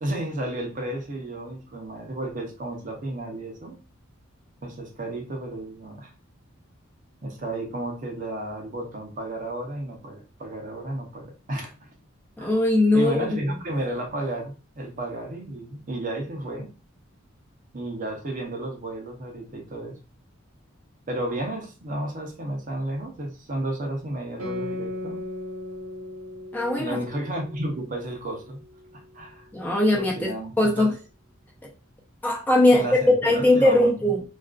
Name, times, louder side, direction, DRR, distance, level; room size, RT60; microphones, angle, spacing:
voice 1, 0.0-3.8 4.6-6.1 7.2-11.9 12.4-12.6 12.9-16.7 17.7-20.0 21.1-25.2 26.8-28.6 28.9-29.5 29.9-30.9 32.7-34.2, right 1 dB, 40° right, 0.6 m, -32 dB
voice 2, 12.4-13.3 26.5-27.0 29.5-30.9 32.2-34.2, left 1 dB, 10° left, 0.4 m, -20 dB
Guitar, 24.4-29.3, left 1 dB, 70° right, 1.0 m, -37 dB
2.4 x 2.3 x 2.3 m
head